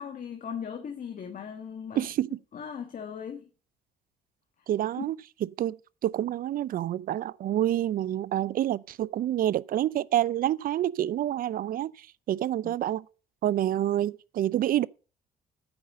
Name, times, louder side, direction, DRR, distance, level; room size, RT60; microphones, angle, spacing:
voice 1, 0.0-2.1 2.5-3.4 12.6-12.7, left 7 dB, 50° left, 1.5 m, -38 dB
voice 2, 2.0-2.4 4.7-13.1 13.4-14.9, right 12 dB, 55° right, 0.4 m, -28 dB
8.8 x 5.4 x 6.6 m
supercardioid pair, 75°, 17 cm